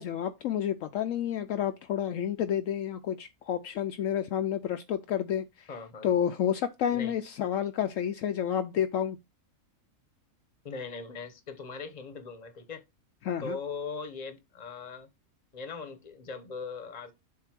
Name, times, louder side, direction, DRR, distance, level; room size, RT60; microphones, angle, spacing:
voice 1, 0.0-5.7 6.0-9.2 13.2-13.6, left 9 dB, 70° left, 0.9 m, -30 dB
voice 2, 5.7-6.1 6.9-7.2 10.6-12.8 13.4-15.1 15.5-17.1, left 4 dB, 30° left, 0.9 m, -40 dB
7.4 x 2.7 x 5.8 m
omnidirectional pair, 1.5 m